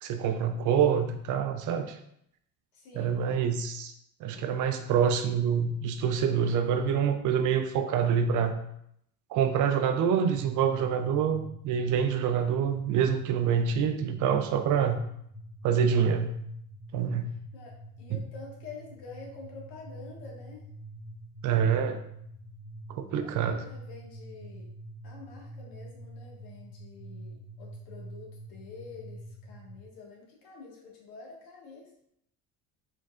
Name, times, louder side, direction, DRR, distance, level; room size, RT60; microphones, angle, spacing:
voice 1, 0.0-2.0 3.0-3.9 4.2-8.5 9.3-15.0 15.6-16.3 16.9-17.3 18.1-18.2 21.4-22.0 22.9-23.6, right 7 dB, 55° right, 8 dB, 0.5 m, -26 dB
voice 2, 2.7-3.2 17.5-20.6 23.2-24.7 25.0-32.1, left 4 dB, 70° left, -2 dB, 1.7 m, -48 dB
sound 1, 10.3-29.8, right 1 dB, 35° left, 0.8 m, -46 dB
4.6 x 4.5 x 2.4 m, 0.73 s
cardioid pair, 135°, 38 cm